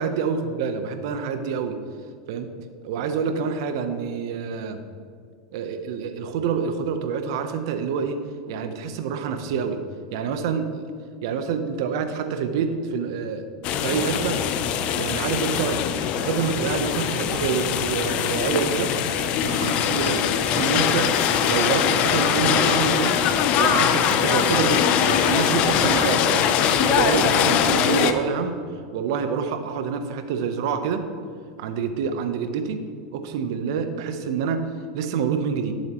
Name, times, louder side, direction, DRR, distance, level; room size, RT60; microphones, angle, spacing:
voice 1, 0.0-1.8 2.3-2.5 2.8-4.8 5.5-8.2 8.5-9.8 10.1-10.8 11.2-13.4 13.8-14.4 14.9-15.8 16.1-18.9 19.4-21.1 21.5-23.2 23.6-26.5 26.8-28.6 28.9-31.0 31.6-32.8 33.1-34.6 34.9-35.7, right 6 dB, 75° right, 8 dB, 0.9 m, -27 dB
sound 1, 13.6-28.1, left 8 dB, 50° left, 0.6 m, -22 dB
12.0 x 7.3 x 3.1 m, 2.2 s
supercardioid pair, 110°, 2 cm